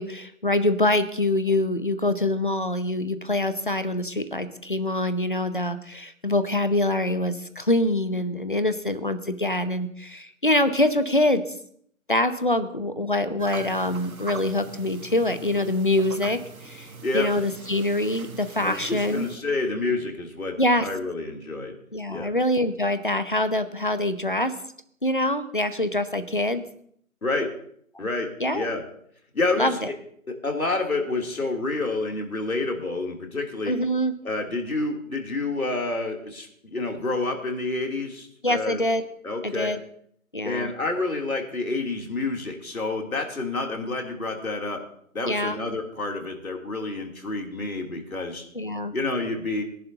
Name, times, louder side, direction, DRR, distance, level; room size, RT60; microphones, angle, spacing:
voice 1, 0.0-11.4 12.1-16.9 17.1-19.3 20.6-20.9 21.9-24.5 25.0-26.6 28.4-28.7 29.6-29.9 33.7-34.1 38.4-39.0 39.4-39.8 40.3-40.7 45.2-45.6 48.5-48.9, left 1 dB, 40° left, 12 dB, 0.8 m, -24 dB
sound 1, 13.4-19.4, right 5 dB, 85° right, 1.3 m, -41 dB
voice 2, 18.6-20.5 20.8-21.7 22.1-22.3 27.2-27.5 28.0-28.8 29.3-29.9 30.4-33.7 34.2-38.8 39.2-39.7 40.4-44.8 45.1-48.4 48.9-49.6, left 3 dB, 80° left, 1 dB, 3.2 m, -28 dB
21.5 x 11.0 x 2.8 m, 0.66 s
figure-of-eight pair, 180°, 42 cm